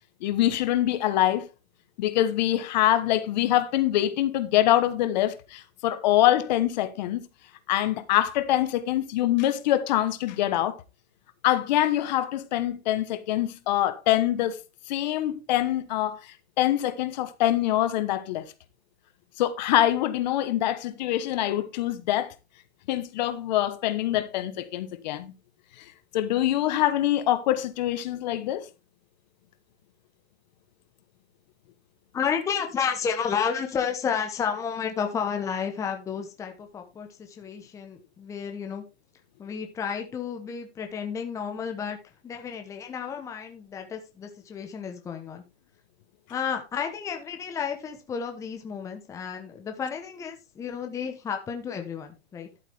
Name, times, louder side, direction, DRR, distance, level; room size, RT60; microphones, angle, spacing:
voice 1, 0.2-1.5 2.0-7.3 7.7-10.8 11.4-18.4 19.4-22.3 22.9-25.3 25.8-25.9 26.1-28.7, left 13 dB, 40° left, 1.1 m, -24 dB
voice 2, 32.1-38.8 39.4-42.0 42.2-45.4 46.3-52.5, left 7 dB, 10° left, 1.0 m, -31 dB
11.5 x 8.3 x 3.4 m
hypercardioid pair, 160°, 33 cm